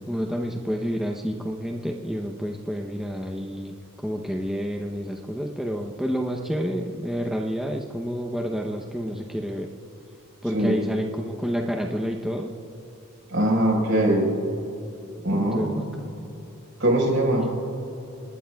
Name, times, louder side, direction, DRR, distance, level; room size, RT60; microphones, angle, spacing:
voice 1, 0.1-3.7 4.0-9.7 10.4-12.5 15.3-15.8 16.1-16.3 17.3-17.5, equal, ahead, 0 dB, 0.7 m, -29 dB
voice 2, 13.3-14.3 15.2-15.8 16.8-17.5, right 1 dB, 60° right, 0 dB, 4.8 m, -22 dB
29.5 x 20.0 x 2.3 m, 2.9 s
head